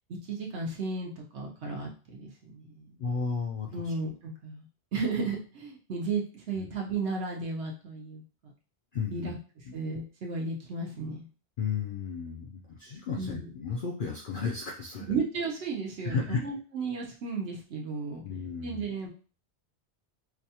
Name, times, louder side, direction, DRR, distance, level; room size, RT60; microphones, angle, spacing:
voice 1, 0.3-2.9 3.7-4.6 4.9-8.2 9.1-9.4 9.7-11.2 13.2-13.5 15.0-18.2 18.6-19.1, right 4 dB, 75° right, -1 dB, 1.1 m, -34 dB
voice 2, 3.0-3.9 6.6-6.7 8.9-9.3 9.7-9.8 11.6-15.1 16.0-16.4 18.2-18.8, left 5 dB, 55° left, -1 dB, 0.7 m, -33 dB
4.7 x 2.3 x 2.8 m, 0.37 s
omnidirectional pair, 1.2 m